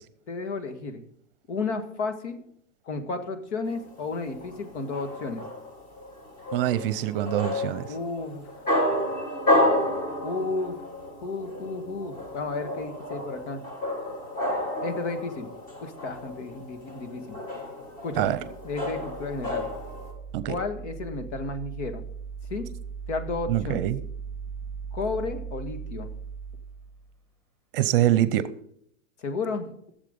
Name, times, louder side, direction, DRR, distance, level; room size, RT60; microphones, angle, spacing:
voice 1, 0.3-1.0 1.5-2.4 2.9-5.5 7.9-8.5 10.2-10.8 11.2-13.6 14.8-15.5 15.8-17.4 18.0-18.3 18.6-19.7 20.4-22.0 22.5-22.7 23.1-23.9 24.9-26.1 29.2-29.7, left 3 dB, 70° left, 1.8 m, -32 dB
sound 1, 3.7-20.1, left 1 dB, 20° left, 1.9 m, -31 dB
voice 2, 6.5-7.9 18.2-18.4 20.3-20.5 23.5-24.0 27.7-28.5, right 13 dB, 50° right, 0.7 m, -24 dB
sound 2, 18.1-27.2, right 6 dB, 5° left, 2.0 m, -39 dB
14.5 x 7.4 x 5.2 m
supercardioid pair, 165°, 36 cm